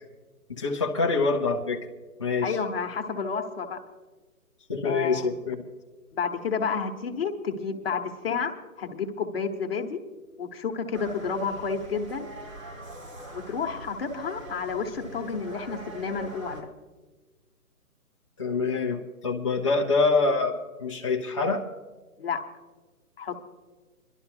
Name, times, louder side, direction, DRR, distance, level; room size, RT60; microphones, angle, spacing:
voice 1, 0.5-1.8 2.2-2.6 4.7-5.6 18.4-21.6, left 4 dB, 20° left, -3 dB, 0.6 m, -25 dB
voice 2, 2.4-3.8 4.8-5.3 6.2-10.0 10.4-12.3 13.3-16.7 22.2-22.4 23.2-23.4, left 5 dB, 40° left, 3 dB, 1.2 m, -30 dB
sound 1, 10.9-16.6, right 1 dB, 55° right, 3.5 m, -43 dB
26.5 x 12.0 x 2.8 m, 1.3 s
hypercardioid pair, 160°, 46 cm